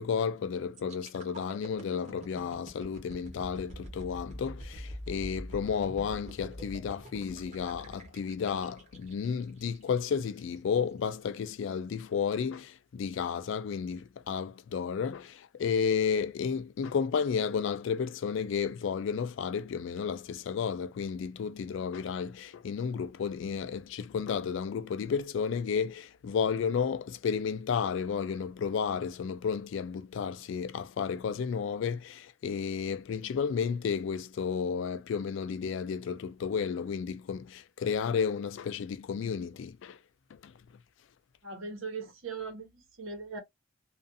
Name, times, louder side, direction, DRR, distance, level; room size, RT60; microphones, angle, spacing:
voice 1, 0.0-40.0 40.3-40.6, left 6 dB, 65° left, 0.3 m, -32 dB
sound 1, 0.7-10.6 11.0-11.2, equal, 35° right, 0.9 m, -45 dB
voice 2, 41.4-43.4, right 4 dB, 80° right, 1.0 m, -39 dB
2.4 x 2.4 x 2.5 m
head